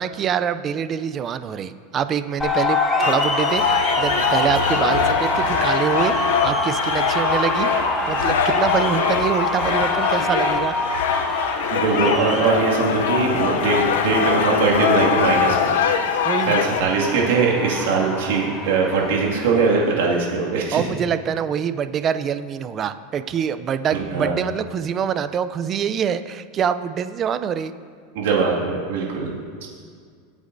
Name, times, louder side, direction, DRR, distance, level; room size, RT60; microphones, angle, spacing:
voice 1, 0.0-7.7 8.1-10.8 11.3-11.6 16.2-16.6 20.7-27.7, right 8 dB, 30° right, 12 dB, 0.4 m, -25 dB
sound 1, 2.4-20.2, left 1 dB, 10° left, 1.3 m, -26 dB
sound 2, 3.0-16.8, left 7 dB, 85° left, 0.6 m, -23 dB
voice 2, 11.7-16.2 16.5-20.8 23.9-24.4 28.1-29.3 29.6-29.7, right 4 dB, 80° right, -3 dB, 2.0 m, -21 dB
18.0 x 8.3 x 2.6 m, 2.1 s
supercardioid pair, 145°, 0 cm